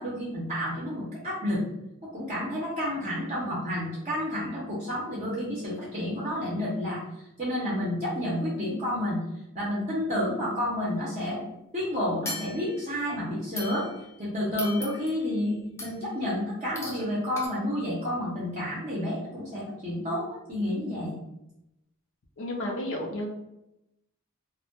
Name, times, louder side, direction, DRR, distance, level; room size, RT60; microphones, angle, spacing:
voice 1, 0.0-1.6 2.1-7.0 7.4-9.2 9.5-11.4 11.7-13.9 14.2-21.2, left 1 dB, 35° right, -6 dB, 0.6 m, -30 dB
sound 1, 12.3-13.0 13.6-14.2 14.6-15.3 15.8-16.1 16.8-17.1 17.4-17.5, left 2 dB, 15° left, 0.5 m, -39 dB
voice 2, 22.4-23.3, left 1 dB, 65° left, 1 dB, 0.5 m, -32 dB
2.1 x 2.0 x 2.8 m, 0.86 s
head